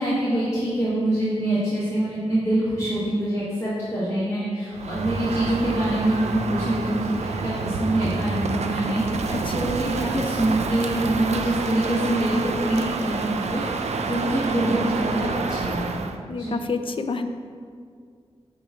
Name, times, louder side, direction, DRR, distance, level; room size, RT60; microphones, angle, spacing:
voice 1, 0.0-16.0 16.4-16.5, right 1 dB, 25° left, -11 dB, 1.5 m, -25 dB
Crow, 4.7-16.2, right 4 dB, 75° right, 0.4 m, -28 dB
voice 2, 9.3-9.7 16.3-17.3, left 4 dB, 50° left, 8 dB, 0.4 m, -29 dB
7.9 x 3.1 x 4.8 m, 2.1 s
wide cardioid pair, 105°, 11 cm